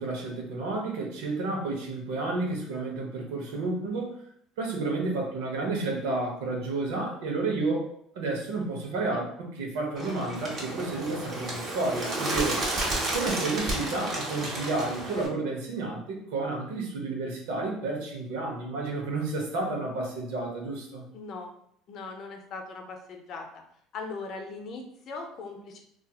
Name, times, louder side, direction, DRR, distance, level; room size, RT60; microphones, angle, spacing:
voice 1, 0.0-4.2 4.6-12.6 13.1-21.1, right 3 dB, 85° right, 0 dB, 0.7 m, -31 dB
Bird, 10.0-15.3, right 1 dB, 45° right, 0.9 m, -32 dB
voice 2, 21.1-21.5 21.9-23.5 23.9-25.8, left 4 dB, 50° left, 3 dB, 0.5 m, -39 dB
2.7 x 2.4 x 2.3 m, 0.67 s
supercardioid pair, 110°, 0 cm